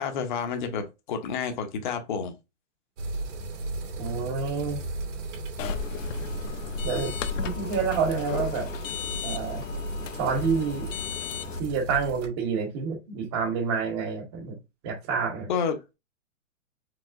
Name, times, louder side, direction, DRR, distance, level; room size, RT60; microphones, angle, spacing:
voice 1, 0.0-2.3 15.5-15.8, left 6 dB, 40° left, 0.8 m, -29 dB
sound 1, 3.0-12.3, right 2 dB, 70° right, 2.2 m, -35 dB
voice 2, 4.0-4.8 6.8-8.7 9.2-9.6 10.2-10.9 11.6-14.6 14.8-15.5, right 5 dB, 20° right, 0.9 m, -28 dB
sound 2, 5.6-11.6, left 6 dB, 85° left, 0.7 m, -35 dB
4.8 x 3.3 x 2.5 m
hypercardioid pair, 170°, 37 cm